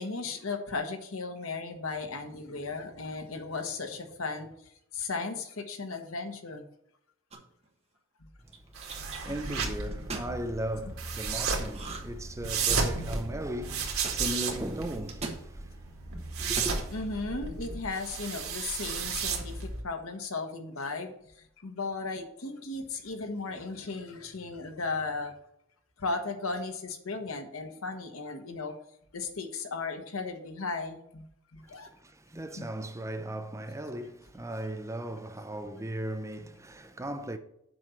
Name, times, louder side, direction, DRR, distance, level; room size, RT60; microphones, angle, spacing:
voice 1, 0.0-4.5 4.9-6.6 8.2-8.3 9.3-9.4 16.9-25.3 26.0-28.8 29.1-31.9 32.5-32.7, left 3 dB, 85° left, 1.3 m, -36 dB
sound 1, 7.3-7.7 8.5-9.2 9.9-10.3 11.7-12.2 12.5-13.1 14.0-14.2 15.1-15.4 16.4-16.8, right 3 dB, 30° right, 1.5 m, -39 dB
voice 2, 8.4-16.8 31.7-37.4, right 1 dB, 15° right, 0.6 m, -38 dB
sound 2, 8.8-19.8, right 5 dB, 85° right, 1.9 m, -34 dB
7.7 x 5.3 x 5.8 m
head